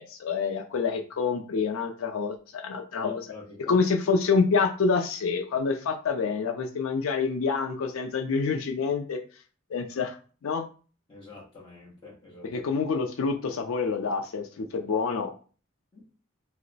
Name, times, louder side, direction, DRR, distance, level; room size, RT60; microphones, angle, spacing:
voice 1, 0.0-3.2 3.7-9.2 9.7-10.2 10.4-10.6 12.4-15.3, left 5 dB, 85° left, 4 dB, 0.4 m, -27 dB
voice 2, 3.0-3.8 11.1-12.5 15.9-16.1, left 3 dB, 20° left, -5 dB, 1.0 m, -45 dB
2.9 x 2.0 x 3.9 m, 0.38 s
head